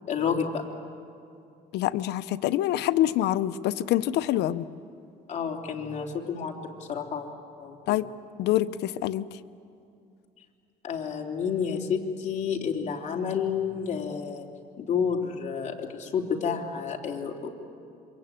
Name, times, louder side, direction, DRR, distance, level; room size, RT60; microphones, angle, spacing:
voice 1, 0.1-0.6 5.3-7.3 7.6-8.0 10.8-14.5 14.8-17.5, left 6 dB, 45° left, 1 dB, 3.3 m, -30 dB
voice 2, 1.7-4.7 7.9-8.1 8.4-9.3, left 13 dB, 80° left, 13 dB, 0.8 m, -26 dB
27.0 x 24.0 x 9.0 m, 2.5 s
cardioid pair, 110°, 17 cm